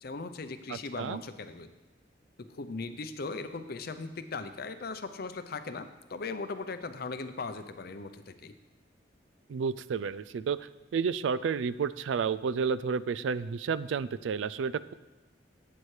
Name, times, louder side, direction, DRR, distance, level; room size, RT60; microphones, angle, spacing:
voice 1, 0.0-1.7 2.6-8.5, left 3 dB, 55° left, 10 dB, 0.6 m, -38 dB
voice 2, 0.7-1.2 9.5-14.9, right 6 dB, 85° right, 16 dB, 0.3 m, -31 dB
12.5 x 8.6 x 3.3 m, 1.1 s
head